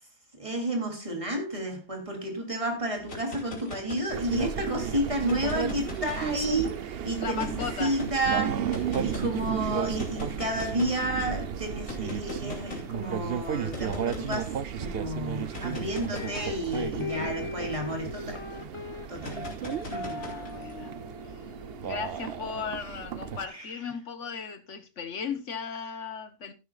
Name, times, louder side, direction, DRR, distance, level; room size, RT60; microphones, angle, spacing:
voice 1, 0.3-6.8 7.0-18.7 19.1-19.5 19.9-20.3 23.5-23.7, right 1 dB, 25° right, 3.4 m, -31 dB
sound 1, 3.0-4.5 5.1-6.7 7.4-8.1 8.7-9.3 9.9-11.0 11.9-12.9 13.7-14.5 15.4-18.2 19.2-20.7, left 3 dB, 85° left, 3.7 m, -41 dB
sound 2, 4.1-23.5, right 8 dB, 55° right, 0.9 m, -34 dB
voice 2, 7.2-7.9 9.9-10.0 19.9-21.0 21.8-26.5, left 6 dB, 65° left, 1.5 m, -36 dB
sound 3, 16.1-23.2, left 3 dB, 25° left, 1.2 m, -40 dB
14.5 x 12.0 x 2.4 m
omnidirectional pair, 1.3 m